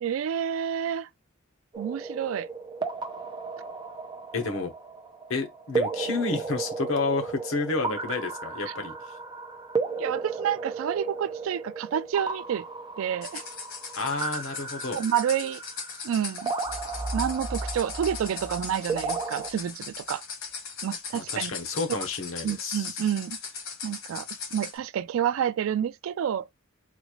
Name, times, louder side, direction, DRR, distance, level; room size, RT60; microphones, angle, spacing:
voice 1, 0.0-1.1 1.8-2.5 10.0-12.7 13.0-13.4 14.9-15.6 16.0-16.5 17.1-20.2 20.8-21.5 22.4-23.4 23.8-26.5, right 9 dB, 70° right, 0.3 m, -29 dB
sound 1, 1.7-19.5, right 4 dB, 20° right, 0.5 m, -35 dB
voice 2, 4.3-4.7 5.3-8.9 14.0-15.0 21.1-23.0, left 3 dB, 70° left, 0.9 m, -30 dB
sound 2, 13.2-24.8, left 5 dB, 90° left, 1.3 m, -39 dB
sound 3, 16.6-19.5, right 1 dB, 45° right, 1.4 m, -37 dB
4.0 x 2.4 x 3.0 m
head